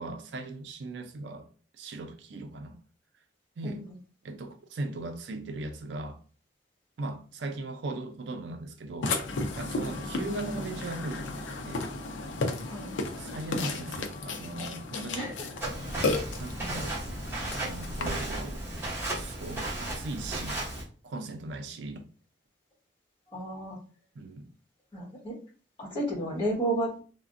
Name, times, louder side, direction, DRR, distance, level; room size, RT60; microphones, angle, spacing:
voice 1, 0.0-1.5 1.7-2.8 3.6-3.8 4.2-6.2 7.0-9.1 9.6-11.9 13.2-15.3 15.7-15.8 16.4-17.0 17.5-18.6 19.1-20.6 21.0-22.0 24.2-24.5, right 2 dB, 75° right, 0.4 m, -38 dB
voice 2, 3.6-4.0 9.8-10.0 12.6-12.9 14.9-15.5 23.3-23.8 24.9-25.4 25.8-27.0, right 1 dB, 30° left, 1.3 m, -32 dB
Burping eructation, 9.0-18.1, left 3 dB, 90° left, 0.4 m, -34 dB
Walk footsteps, 15.6-20.8, right 1 dB, 15° right, 0.9 m, -35 dB
3.3 x 2.1 x 2.5 m
head